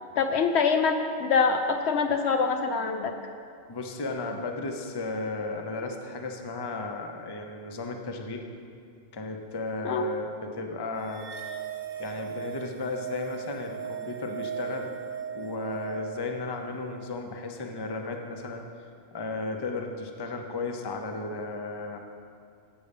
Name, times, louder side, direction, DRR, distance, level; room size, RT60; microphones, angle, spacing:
voice 1, 0.2-0.9 1.2-3.1 9.8-10.0, left 5 dB, 65° left, 6 dB, 0.8 m, -24 dB
voice 2, 3.7-8.4 9.1-11.3 12.0-14.9 15.3-18.6 19.1-22.0, left 3 dB, 25° left, 4 dB, 0.6 m, -34 dB
sound 1, 11.1-17.6, right 8 dB, 55° right, 1.0 m, -38 dB
15.0 x 5.3 x 5.3 m, 2.3 s
omnidirectional pair, 1.3 m